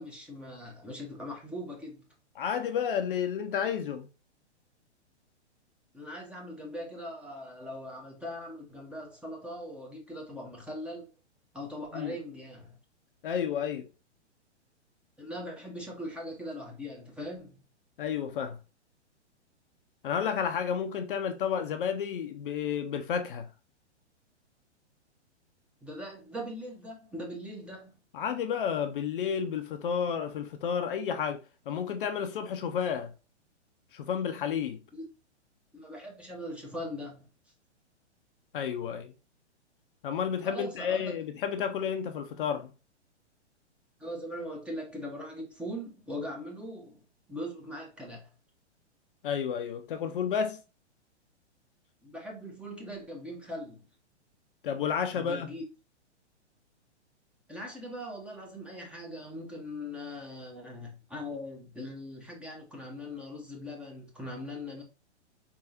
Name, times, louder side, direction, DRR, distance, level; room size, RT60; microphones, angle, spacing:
voice 1, 0.0-2.0 5.9-11.1 11.5-12.8 15.2-17.6 25.8-27.9 34.9-35.0 35.7-37.3 40.4-41.1 44.0-47.0 47.3-48.3 52.0-53.8 55.1-55.6 57.5-64.8, left 1 dB, 5° right, 0.8 m, -40 dB
voice 2, 2.4-4.1 11.9-12.1 13.2-13.9 18.0-18.6 20.0-23.5 28.1-31.4 31.7-33.1 33.9-34.8 38.5-39.1 40.0-42.7 49.2-50.6 54.6-55.5, left 7 dB, 50° left, 0.6 m, -31 dB
4.6 x 3.5 x 2.8 m
figure-of-eight pair, 115°, 35 cm